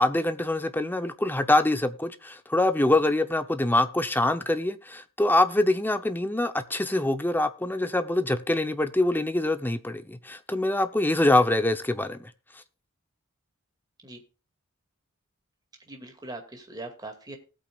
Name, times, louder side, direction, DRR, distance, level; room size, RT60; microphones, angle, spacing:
voice 1, 0.0-12.3, left 2 dB, 10° left, 0.7 m, -24 dB
voice 2, 15.9-17.4, right 2 dB, 20° right, 2.2 m, -41 dB
19.0 x 8.6 x 2.4 m
head